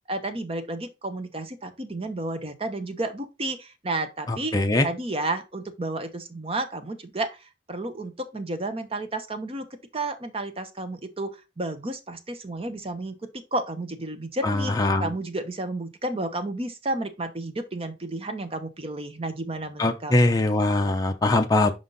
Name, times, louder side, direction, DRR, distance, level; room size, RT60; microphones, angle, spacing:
voice 1, 0.1-4.6 4.8-7.4 7.7-9.7 9.9-13.2 13.5-20.4, right 2 dB, 35° right, 0.8 m, -32 dB
voice 2, 4.3-4.9 14.4-15.1 19.8-21.7, left 2 dB, 20° left, 0.6 m, -22 dB
5.6 x 5.1 x 3.9 m
head